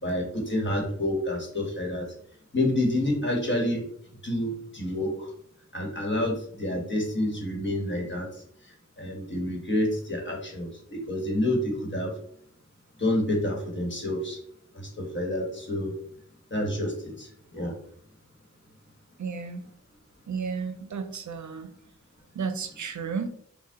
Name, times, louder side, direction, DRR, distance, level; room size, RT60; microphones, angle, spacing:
voice 1, 0.0-2.1 2.5-3.9 4.2-5.3 5.7-8.3 9.0-12.1 13.0-14.4 14.7-15.9 16.5-17.7, left 1 dB, 40° left, 0 dB, 1.3 m, -28 dB
voice 2, 19.2-19.6 20.3-21.7 22.3-23.3, right 5 dB, 75° right, 8 dB, 0.5 m, -33 dB
5.4 x 2.2 x 3.5 m, 0.64 s
wide cardioid pair, 80°, 29 cm